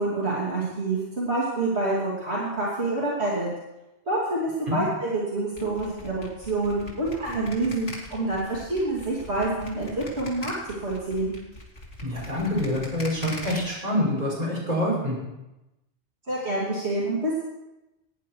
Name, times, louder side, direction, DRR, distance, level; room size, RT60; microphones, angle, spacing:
voice 1, 0.0-3.5 4.1-6.1 6.5-11.3 16.3-17.4, right 2 dB, 65° right, -6 dB, 3.1 m, -27 dB
sound 1, 5.6-13.6, left 1 dB, 85° left, 3.0 m, -41 dB
voice 2, 12.0-15.2, left 1 dB, 35° right, -5 dB, 5.5 m, -26 dB
17.5 x 9.9 x 4.6 m, 0.96 s
omnidirectional pair, 1.2 m